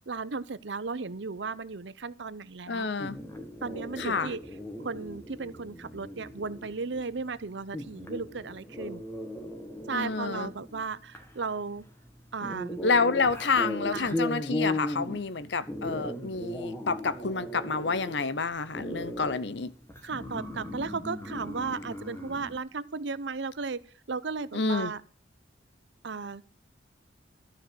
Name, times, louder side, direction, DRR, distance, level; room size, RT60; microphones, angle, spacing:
voice 1, 0.1-2.9 3.6-4.4 4.8-9.0 9.9-11.8 12.3-12.8 13.9-14.2 20.0-23.8 24.1-25.0 26.0-26.4, right 4 dB, 70° right, 0.7 m, -35 dB
voice 2, 2.7-3.2 4.0-4.3 9.9-10.5 12.8-19.7 24.5-24.9, left 4 dB, 65° left, 0.8 m, -29 dB
sound 1, 3.0-22.6, left 1 dB, 15° left, 1.9 m, -38 dB
12.5 x 6.6 x 7.7 m
head